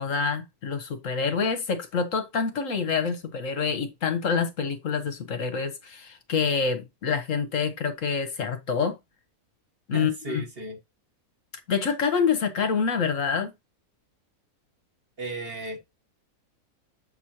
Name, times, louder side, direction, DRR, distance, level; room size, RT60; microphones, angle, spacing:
voice 1, 0.0-9.0 9.9-10.4 11.7-13.5, left 5 dB, 60° left, 1.3 m, -27 dB
voice 2, 9.9-10.8 15.2-15.8, right 2 dB, 40° right, 1.8 m, -35 dB
7.5 x 6.1 x 2.8 m
omnidirectional pair, 1.6 m